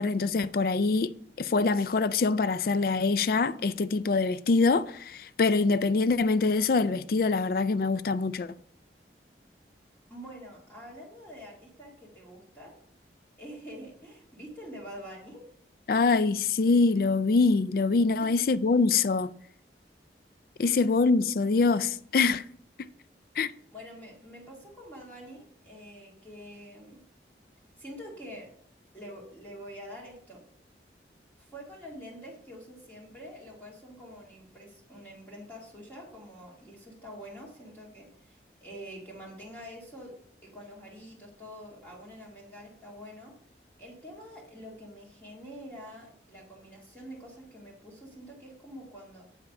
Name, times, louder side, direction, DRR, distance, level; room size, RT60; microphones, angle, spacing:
voice 1, 0.0-8.5 15.9-19.3 20.6-22.5 23.4-23.5, left 4 dB, 50° left, 0.3 m, -24 dB
voice 2, 10.1-12.8 13.4-15.5 23.7-27.0 27.8-28.5 28.9-30.4 31.4-40.2 40.5-43.3 43.8-49.2, equal, 10° left, 1.8 m, -46 dB
8.0 x 5.6 x 5.3 m
head